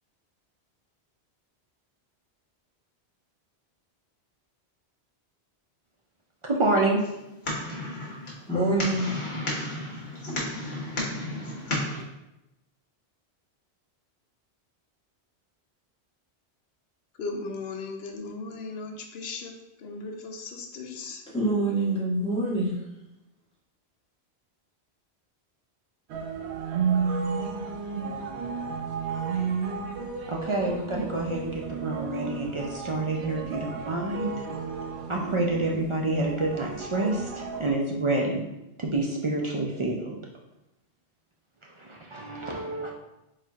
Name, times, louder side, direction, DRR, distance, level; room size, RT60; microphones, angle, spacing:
voice 1, 6.4-7.0 30.3-34.5 35.1-38.4 38.8-40.2 41.6-42.9, right 2 dB, 50° right, 0.3 m, -28 dB
sound 1, 7.0-12.0, left 1 dB, 45° left, 1.1 m, -33 dB
voice 2, 8.5-9.2 10.3-11.0 21.3-22.8, right 2 dB, 5° left, 1.1 m, -27 dB
voice 3, 17.2-19.5 19.8-21.2, left 3 dB, 70° left, 0.8 m, -37 dB
Trafalger Square Chinese New Year (Music Performance), 26.1-37.7, right 5 dB, 85° right, 0.9 m, -32 dB
4.2 x 4.0 x 2.4 m
omnidirectional pair, 1.1 m